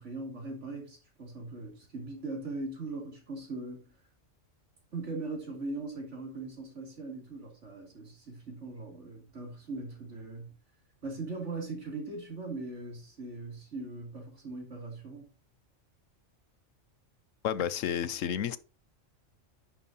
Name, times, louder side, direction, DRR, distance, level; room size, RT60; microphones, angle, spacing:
voice 1, 0.0-3.9 4.9-10.5 11.0-15.2, right 3 dB, 70° right, 3.4 m, -40 dB
voice 2, 17.4-18.6, left 9 dB, 85° left, 1.2 m, -31 dB
10.0 x 7.2 x 2.9 m
omnidirectional pair, 1.3 m